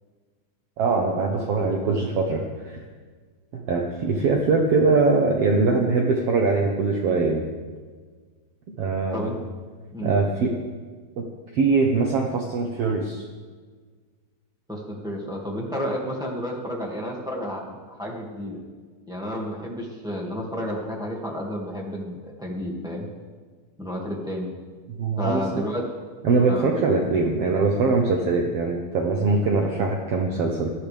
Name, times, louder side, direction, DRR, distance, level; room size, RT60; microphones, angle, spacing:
voice 1, 0.8-2.8 3.5-7.5 8.8-9.3 10.0-10.5 11.2-11.3 11.5-13.2 24.9-25.6 26.2-30.7, right 3 dB, 60° right, 1 dB, 1.8 m, -22 dB
voice 2, 14.7-18.6 19.1-23.1 23.8-24.5 25.2-25.8 26.5-26.6, equal, ahead, -3 dB, 1.5 m, -31 dB
17.5 x 13.5 x 3.5 m, 1.5 s
omnidirectional pair, 3.4 m